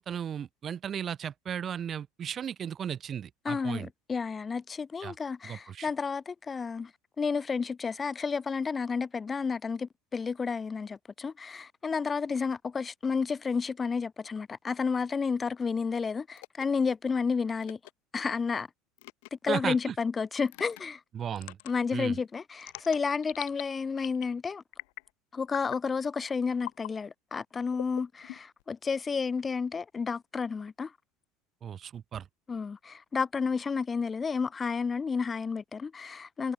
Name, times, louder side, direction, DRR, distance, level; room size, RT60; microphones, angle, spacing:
voice 1, 0.0-3.9 5.0-5.1 5.4-5.9 19.5-19.9 21.1-21.6 21.9-22.2 31.6-32.3, right 8 dB, 25° right, 1.7 m, -35 dB
voice 2, 3.4-6.9 7.2-17.8 18.1-18.7 19.3-21.0 21.6-24.6 25.3-30.9 32.5-36.5, left 5 dB, 15° left, 1.5 m, -31 dB
sound 1, 16.4-16.6 17.6-17.9 19.0-19.3 20.5-20.8 21.4-21.7 22.6-23.6 24.0-24.4 24.7-25.1 25.5-25.8 26.6-26.9 27.7-28.6, left 31 dB, 75° left, 0.7 m, -43 dB
cardioid pair, 160°, 0 cm